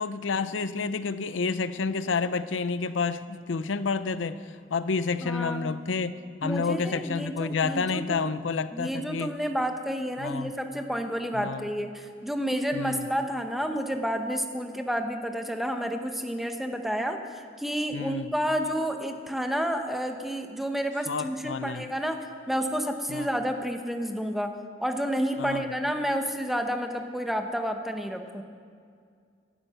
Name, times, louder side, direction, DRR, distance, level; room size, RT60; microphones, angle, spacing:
voice 1, 0.0-4.4 4.7-6.1 6.4-9.3 10.2-10.5 11.3-11.7 12.7-13.1 17.9-18.3 21.1-21.9 23.1-23.3 25.4-25.6, left 4 dB, 90° left, 14 dB, 0.6 m, -29 dB
voice 2, 5.2-5.7 6.4-8.3 8.7-24.5 24.8-28.4, equal, ahead, 5 dB, 0.9 m, -30 dB
17.0 x 12.0 x 5.7 m, 2.2 s
head